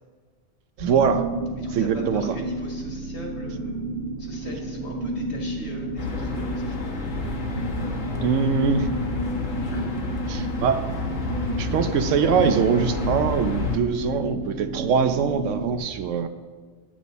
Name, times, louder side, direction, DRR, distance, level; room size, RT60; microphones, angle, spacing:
sound 1, 0.8-15.8, right 2 dB, 55° right, 1.5 m, -31 dB
voice 1, 0.8-1.3 1.7-2.2 8.2-8.9 10.3-10.8 11.6-16.3, right 6 dB, 75° right, 9 dB, 1.0 m, -23 dB
voice 2, 1.6-3.8 4.2-6.9, left 1 dB, 60° left, -1 dB, 2.1 m, -39 dB
sound 2, 6.0-13.8, left 4 dB, 85° left, 1.5 m, -30 dB
9.0 x 8.4 x 4.1 m, 1.5 s
omnidirectional pair, 1.3 m